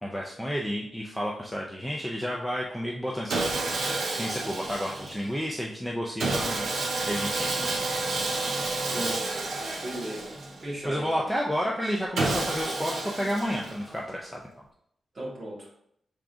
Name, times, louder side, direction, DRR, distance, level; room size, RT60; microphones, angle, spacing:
voice 1, 0.0-3.4 3.7-3.9 4.2-6.7 7.1-7.9 10.8-14.4, equal, 5° left, -3 dB, 0.4 m, -31 dB
Sawing, 3.3-5.3 6.2-10.7 12.2-14.0, right 2 dB, 90° right, 0.9 m, -30 dB
voice 2, 8.9-9.3 9.8-10.3 10.6-11.3 15.1-15.7, right 1 dB, 30° right, -5 dB, 1.6 m, -36 dB
5.8 x 3.6 x 2.5 m, 0.72 s
wide cardioid pair, 180°, 0 cm